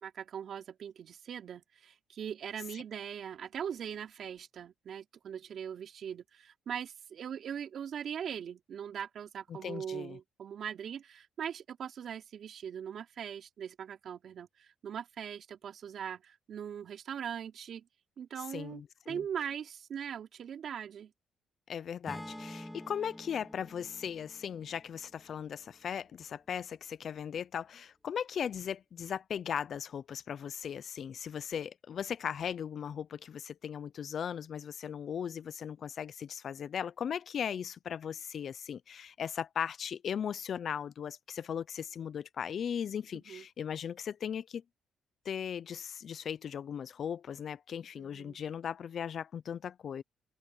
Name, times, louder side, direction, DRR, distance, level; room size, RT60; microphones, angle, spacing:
voice 1, 0.0-17.9 18.2-21.1 43.3-43.5 48.0-48.4, right 8 dB, 60° right, 3.4 m, -41 dB
voice 2, 9.5-10.2 18.5-19.2 21.7-44.6 45.2-50.0, left 8 dB, 55° left, 0.7 m, -38 dB
Acoustic guitar / Strum, 22.1-26.3, left 1 dB, 5° left, 2.7 m, -48 dB
cardioid pair, 90°, 0 cm